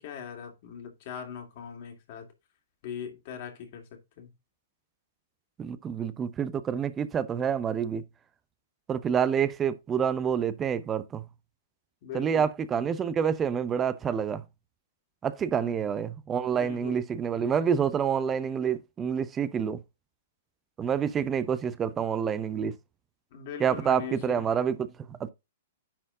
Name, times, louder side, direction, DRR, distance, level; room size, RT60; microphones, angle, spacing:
voice 1, 0.0-2.3 2.8-3.9 4.2-4.3 12.0-12.5 15.6-15.7 16.4-17.0 21.2-21.3 23.3-24.4, left 7 dB, 45° left, 2.6 m, -40 dB
voice 2, 5.6-8.0 8.9-11.2 12.1-14.4 15.2-19.8 20.8-22.7 23.6-25.3, right 7 dB, 20° right, 0.6 m, -28 dB
10.0 x 4.3 x 3.7 m
figure-of-eight pair, 110°, 0 cm